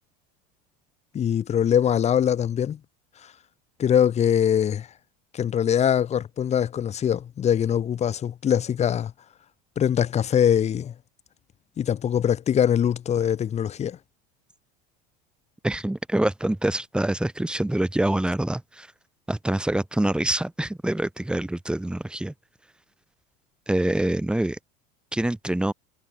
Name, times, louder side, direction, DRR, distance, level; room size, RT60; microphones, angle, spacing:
voice 1, 1.1-2.8 3.8-4.9 5.3-9.1 9.8-10.9 11.8-14.0, left 9 dB, 35° left, 5.0 m, -22 dB
voice 2, 15.6-18.9 19.3-22.3 23.7-24.6 25.1-25.7, right 1 dB, 5° right, 2.1 m, -25 dB
supercardioid pair, 125°, 20 cm